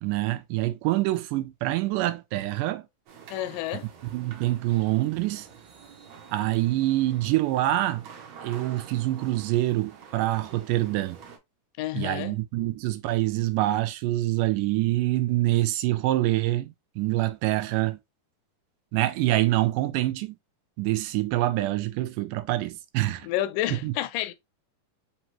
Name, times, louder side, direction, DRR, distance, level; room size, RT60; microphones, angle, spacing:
voice 1, 0.0-2.8 4.1-5.5 6.3-8.0 8.4-11.2 11.9-18.0 18.9-20.4 20.8-23.3 23.8-23.9, right 16 dB, 85° right, 2.1 m, -26 dB
sound 1, 3.1-11.4, right 7 dB, 65° right, 1.9 m, -48 dB
voice 2, 3.3-3.9 11.8-12.4 23.2-24.3, left 14 dB, 85° left, 2.1 m, -30 dB
5.2 x 3.0 x 2.9 m
omnidirectional pair, 3.7 m